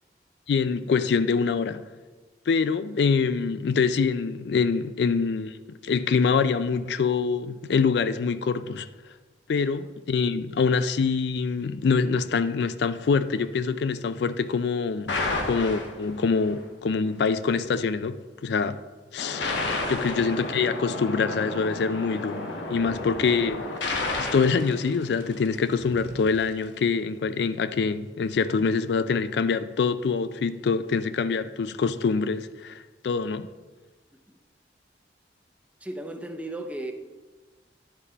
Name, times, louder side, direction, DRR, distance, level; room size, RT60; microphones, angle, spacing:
voice 1, 0.5-1.9 2.5-5.6 5.8-8.9 9.5-15.1 15.4-18.8 19.1-19.5 19.9-23.7 24.2-33.5, left 5 dB, 70° left, 0.3 m, -25 dB
sound 1, 15.1-16.5 19.2-25.7, left 2 dB, 85° left, 1.1 m, -31 dB
sound 2, 22.6-24.2 25.6-27.0, right 2 dB, 60° right, 0.6 m, -46 dB
voice 2, 35.8-36.9, right 1 dB, 10° right, 0.6 m, -36 dB
10.5 x 4.2 x 5.0 m
head